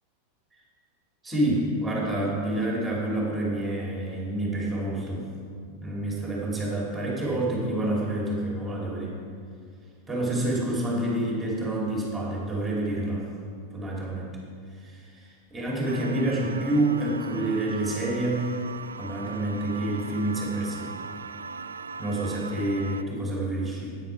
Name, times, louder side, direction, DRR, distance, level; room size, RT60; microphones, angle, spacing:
voice 1, 1.2-5.3 5.8-9.1 10.1-13.3 13.7-14.3 14.8-18.5 19.0-20.9 22.0-24.0, right 1 dB, 10° right, -3 dB, 2.6 m, -28 dB
sound 1, 15.8-23.0, right 5 dB, 70° right, 0.3 m, -40 dB
9.3 x 9.0 x 4.6 m, 2.2 s
figure-of-eight pair, 90°, 0 cm